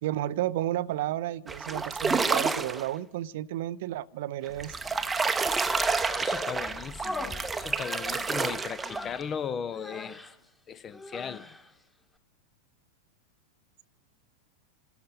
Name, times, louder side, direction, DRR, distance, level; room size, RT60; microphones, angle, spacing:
voice 1, 0.0-4.7, right 13 dB, 55° right, 0.5 m, -32 dB
sound 1, 1.5-2.9 4.5-9.2, right 4 dB, 10° right, 0.8 m, -29 dB
Human voice, 5.5-6.6 7.0-9.4 9.7-10.3 10.9-11.7, left 2 dB, 10° left, 1.5 m, -40 dB
voice 2, 6.2-10.2 10.7-11.5, left 7 dB, 25° left, 0.7 m, -37 dB
27.5 x 13.0 x 3.9 m
figure-of-eight pair, 90°, 0 cm